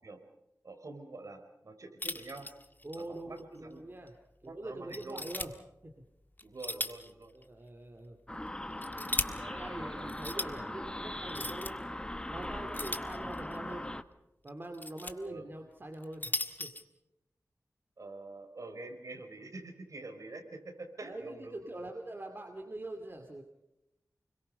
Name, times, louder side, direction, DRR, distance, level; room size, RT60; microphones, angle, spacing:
voice 1, 0.6-2.5 3.0-3.8 4.4-5.2 6.4-7.3 9.4-10.1 10.3-10.4 15.2-15.4 18.0-21.9, right 2 dB, 60° right, 5 dB, 4.6 m, -46 dB
sound 1, 2.0-3.1 3.4-3.5 4.1-4.2 4.9-5.5 6.4-7.1 7.4-7.5 8.5-9.3 10.1-10.5 11.3-11.7 12.7-13.6 14.5-15.1 15.9-16.8, left 2 dB, 30° left, 1.7 m, -37 dB
voice 2, 2.8-4.1 4.4-5.5 5.8-5.9 7.3-8.2 9.5-11.8 12.3-13.9 14.4-16.7 21.0-23.4, right 1 dB, 35° right, 3 dB, 2.5 m, -44 dB
sound 2, 8.3-14.0, left 1 dB, 15° left, 1.0 m, -40 dB
29.5 x 22.5 x 5.5 m, 0.89 s
wide cardioid pair, 90°, 6 cm